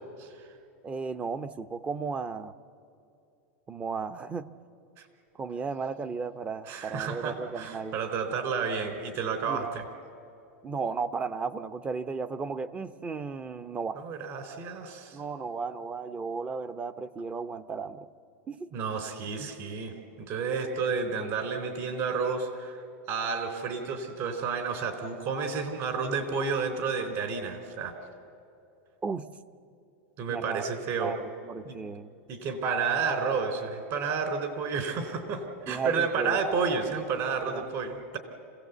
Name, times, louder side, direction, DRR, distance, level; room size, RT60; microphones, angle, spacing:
voice 1, 0.8-2.5 3.7-4.5 5.3-8.0 9.4-9.7 10.6-14.0 15.1-18.1 18.5-18.7 19.4-19.5 29.0-29.3 30.3-30.7 31.0-32.1 35.7-36.4 37.5-37.7, right 5 dB, 20° right, 12 dB, 0.7 m, -34 dB
voice 2, 6.7-9.8 14.0-15.2 18.7-22.8 23.1-27.9 30.2-31.1 31.6-31.8 32.3-38.2, right 5 dB, 45° right, 7 dB, 3.7 m, -31 dB
26.5 x 17.0 x 8.2 m, 2.6 s
supercardioid pair, 135°, 7 cm